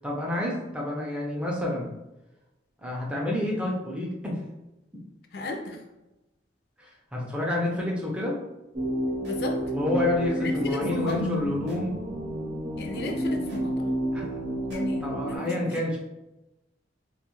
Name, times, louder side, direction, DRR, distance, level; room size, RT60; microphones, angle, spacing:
voice 1, 0.0-1.9 2.8-4.4 6.8-8.4 9.7-12.0 14.1-14.4 15.0-16.0, left 1 dB, 5° right, -3 dB, 0.4 m, -29 dB
voice 2, 5.3-5.8 9.2-9.6 10.4-11.4 12.8-13.9 14.6-15.8, left 2 dB, 60° left, 3 dB, 0.4 m, -34 dB
sound 1, 8.7-15.4, right 1 dB, 75° right, 0.8 m, -30 dB
2.4 x 2.3 x 3.0 m, 0.98 s
head